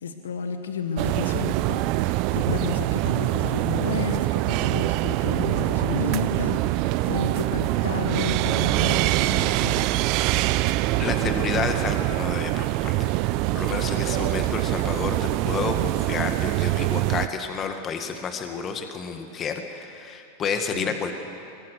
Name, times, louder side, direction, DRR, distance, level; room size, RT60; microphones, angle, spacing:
voice 1, 0.0-9.9 20.7-21.0, left 6 dB, 80° left, 6 dB, 1.4 m, -32 dB
sound 1, 1.0-17.3, right 17 dB, 50° right, 0.6 m, -24 dB
voice 2, 11.0-13.1 13.5-21.1, left 5 dB, 30° left, 6 dB, 1.8 m, -30 dB
22.5 x 21.0 x 6.7 m, 2.6 s
hypercardioid pair, 105°, 0 cm